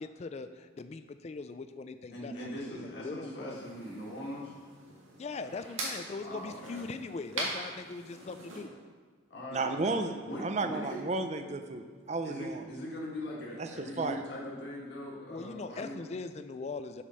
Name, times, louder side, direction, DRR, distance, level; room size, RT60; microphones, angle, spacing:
voice 1, 0.0-3.6 5.2-8.7 15.3-17.0, left 4 dB, 35° left, 10 dB, 0.3 m, -41 dB
voice 2, 2.1-4.5 6.2-6.8 9.3-9.8 10.2-11.0 12.2-15.9, left 1 dB, 55° left, -5 dB, 1.7 m, -41 dB
sound 1, 3.5-8.6, right 2 dB, 90° right, 1.8 m, -42 dB
voice 3, 9.5-12.7 13.6-14.2, right 3 dB, 35° right, 7 dB, 0.5 m, -33 dB
8.3 x 5.1 x 5.6 m, 1.5 s
head